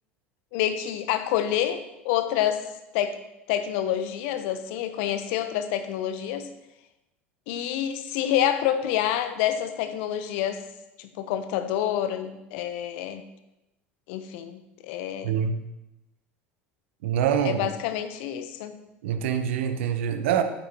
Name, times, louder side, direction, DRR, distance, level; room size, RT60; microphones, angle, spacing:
voice 1, 0.5-2.6 2.9-3.2 3.5-6.5 7.5-10.6 11.0-13.2 14.1-15.4 17.4-18.7, left 11 dB, 65° left, 1.0 m, -27 dB
voice 2, 15.2-15.6 17.0-17.7 19.0-20.4, right 8 dB, 70° right, 1.0 m, -25 dB
12.0 x 9.5 x 3.0 m
hypercardioid pair, 70°, 7 cm